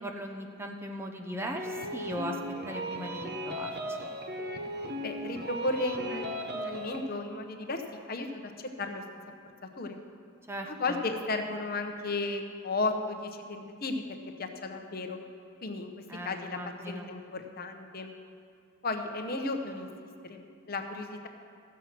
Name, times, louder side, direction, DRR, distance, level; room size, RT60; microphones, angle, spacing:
voice 1, 0.0-2.4 2.7-3.7 4.0-4.1 10.5-11.0 16.1-17.1, equal, 10° right, 2 dB, 0.6 m, -38 dB
sound 1, 1.5-7.0, equal, 45° right, 0.9 m, -37 dB
voice 2, 5.0-8.5 8.8-9.0 9.8-10.0 10.7-15.2 15.6-15.9 16.2-16.6 16.9-18.1 18.8-19.9 20.2-21.3, left 2 dB, 45° left, 5 dB, 0.8 m, -34 dB
15.0 x 7.4 x 5.9 m, 2.3 s
head